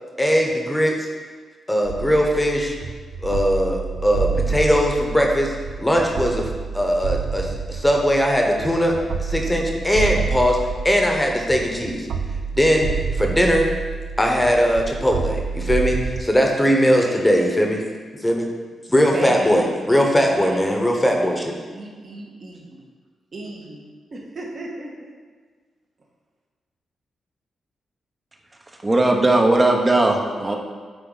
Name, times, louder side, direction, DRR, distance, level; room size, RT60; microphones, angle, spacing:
voice 1, 0.2-1.0 1.7-2.8 3.2-6.5 6.7-10.6 10.8-12.1 12.5-13.7 14.2-17.8 18.2-18.5 18.9-21.6, equal, 10° left, 1 dB, 1.1 m, -20 dB
sound 1, 1.8-16.2, right 5 dB, 75° right, 0.5 m, -28 dB
voice 2, 19.1-19.9 20.2-22.8 23.3-25.1, right 2 dB, 45° right, -2 dB, 1.5 m, -35 dB
voice 3, 28.7-30.6, right 2 dB, 25° right, 1 dB, 0.9 m, -18 dB
9.1 x 4.0 x 4.0 m, 1.5 s
cardioid pair, 75°, 0 cm